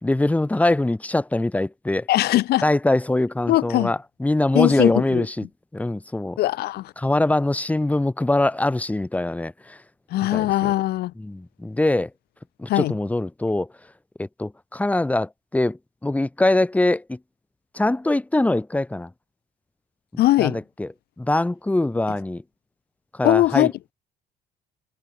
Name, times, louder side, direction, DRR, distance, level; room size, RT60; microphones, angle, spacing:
voice 1, 0.0-2.1 2.6-5.5 5.7-6.4 7.0-9.8 10.3-10.7 11.2-12.1 12.6-13.7 14.2-17.2 17.7-19.1 20.1-20.9 21.2-22.4 23.1-23.7, left 2 dB, 10° left, 1.4 m, -23 dB
voice 2, 2.1-2.6 3.5-3.9 4.5-5.3 6.4-6.9 10.1-11.1 12.7-12.9 20.2-20.6 23.2-23.7, left 16 dB, 70° left, 0.9 m, -20 dB
cardioid pair, 110°, 17 cm